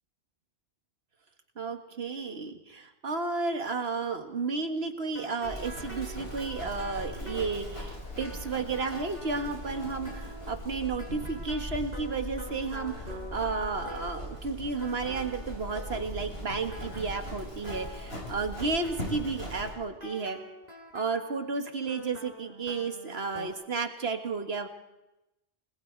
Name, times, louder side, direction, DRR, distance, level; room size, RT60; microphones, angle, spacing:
voice 1, 1.6-20.4 20.9-24.7, right 4 dB, 75° right, 6 dB, 2.0 m, -32 dB
sound 1, 5.0-14.5 14.8-16.3 16.7-18.0 18.5-23.5, equal, 40° right, 4.8 m, -46 dB
Livestock farm animals working animals, 5.4-19.7, equal, 70° left, 7.0 m, -40 dB
29.0 x 20.0 x 4.6 m, 0.94 s
omnidirectional pair, 1.1 m